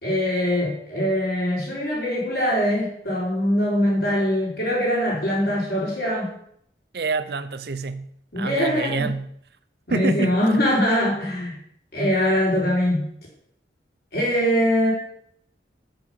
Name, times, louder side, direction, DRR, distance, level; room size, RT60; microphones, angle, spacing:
voice 1, 0.0-6.3 8.3-9.1 9.9-11.5 11.9-13.0 14.1-14.9, equal, 60° left, 4.2 m, -22 dB
voice 2, 6.9-8.1 8.4-9.2 9.9-10.6, right 4 dB, 60° right, 0.6 m, -27 dB
8.0 x 6.8 x 5.7 m
head